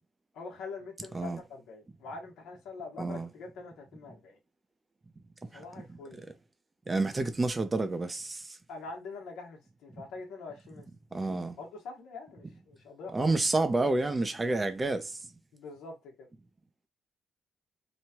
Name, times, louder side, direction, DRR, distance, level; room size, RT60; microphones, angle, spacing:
voice 1, 0.3-4.4 5.5-6.2 8.7-10.9 11.1-11.2 11.6-13.4 15.5-16.3, left 4 dB, 85° left, 1.1 m, -44 dB
voice 2, 3.0-3.3 5.5-5.6 6.9-8.6 11.1-11.6 13.1-15.2, right 2 dB, 25° right, 0.5 m, -29 dB
3.0 x 2.2 x 2.8 m
cardioid pair, 90°, 0 cm